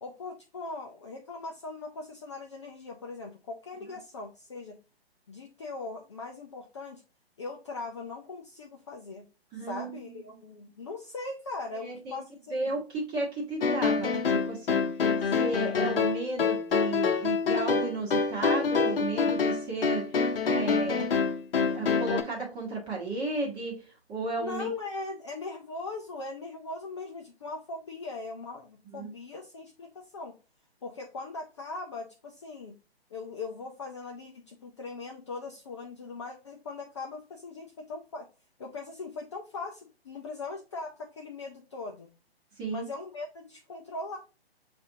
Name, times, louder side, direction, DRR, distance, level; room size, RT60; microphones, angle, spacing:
voice 1, 0.0-4.8 5.3-7.0 7.4-9.2 9.6-12.7 24.4-30.4 30.8-32.8 33.1-38.3 38.6-42.1 42.7-44.2, left 3 dB, 30° left, 0 dB, 0.4 m, -40 dB
voice 2, 9.5-10.2 11.8-12.2 12.5-14.8 15.3-20.0 20.4-21.3 21.6-23.7 24.1-24.7 28.9-29.1 42.6-42.9, right 3 dB, 15° right, -3 dB, 1.1 m, -34 dB
sound 1, 13.6-22.2, left 5 dB, 60° left, 0.8 m, -26 dB
6.5 x 2.5 x 2.6 m, 0.32 s
hypercardioid pair, 140°, 32 cm